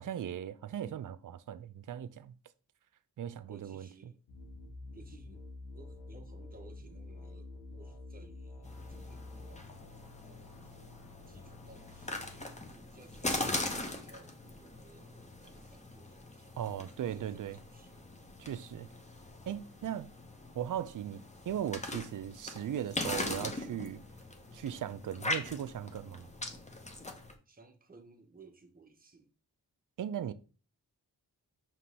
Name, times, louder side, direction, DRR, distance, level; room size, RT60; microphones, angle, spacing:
voice 1, 0.0-2.3 3.2-3.9 16.6-17.6 18.4-18.9 19.5-20.1 20.5-24.0 24.5-26.3 30.0-30.3, right 10 dB, 55° right, 0.4 m, -38 dB
voice 2, 3.5-4.2 4.9-5.5 5.7-10.8 11.3-16.5 17.1-18.1 27.5-29.3, right 3 dB, 20° right, 0.8 m, -59 dB
sound 1, 4.3-12.4, left 2 dB, 70° left, 0.9 m, -49 dB
sound 2, 8.6-27.3, left 2 dB, 15° left, 0.8 m, -41 dB
5.2 x 3.0 x 2.9 m
cardioid pair, 50°, 40 cm